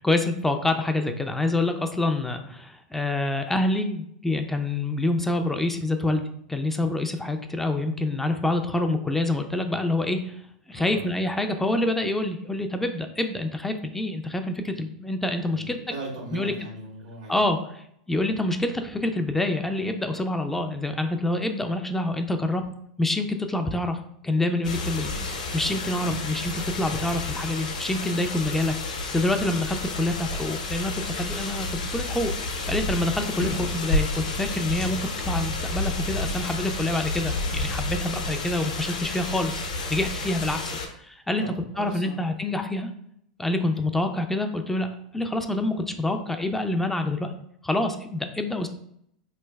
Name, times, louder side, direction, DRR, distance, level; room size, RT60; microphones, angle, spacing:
voice 1, 0.0-10.4 10.7-15.8 16.3-16.5 17.3-22.6 23.0-24.0 24.2-25.1 25.5-31.7 31.9-35.0 35.3-41.5 41.8-42.9 43.4-44.9 45.1-47.3 47.6-48.7, left 2 dB, 5° left, 5 dB, 0.3 m, -27 dB
voice 2, 10.7-11.0 15.5-17.3 26.0-26.2 41.4-42.2, right 2 dB, 80° right, -1 dB, 1.3 m, -39 dB
sound 1, 24.6-40.9, left 2 dB, 75° left, 0.7 m, -30 dB
4.3 x 3.1 x 2.2 m, 0.70 s
hypercardioid pair, 95°, 4 cm